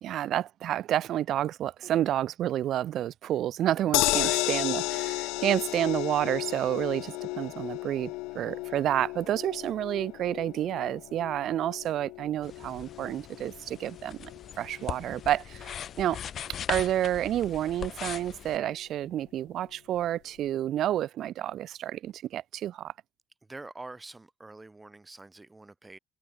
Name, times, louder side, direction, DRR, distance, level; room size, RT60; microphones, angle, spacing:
voice 1, 0.0-14.3 14.6-16.2 16.7-22.9, right 12 dB, 65° right, 2.8 m, -30 dB
voice 2, 3.6-4.4 23.5-26.0, right 2 dB, 20° right, 4.4 m, -46 dB
sound 1, 3.9-16.2 16.5-16.6 16.9-17.0, left 23 dB, 85° left, 1.1 m, -34 dB
sound 2, 12.4-18.6, left 9 dB, 55° left, 2.2 m, -40 dB
supercardioid pair, 70°, 0 cm